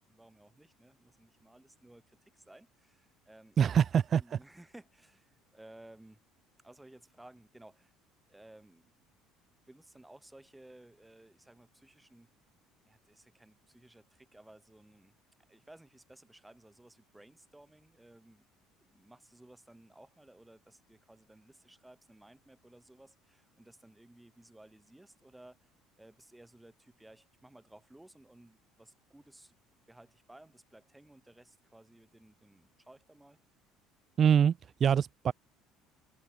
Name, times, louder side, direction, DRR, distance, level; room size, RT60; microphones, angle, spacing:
voice 1, 0.1-3.6 4.1-6.2 6.6-7.9 8.3-9.1 9.6-12.3 12.8-15.1 15.5-18.5 18.8-25.7 26.0-29.6 29.9-33.4, right 1 dB, 10° right, 6.2 m, -57 dB
voice 2, 3.6-4.4 34.2-35.3, right 8 dB, 45° right, 0.4 m, -25 dB
hypercardioid pair, 75°, 0 cm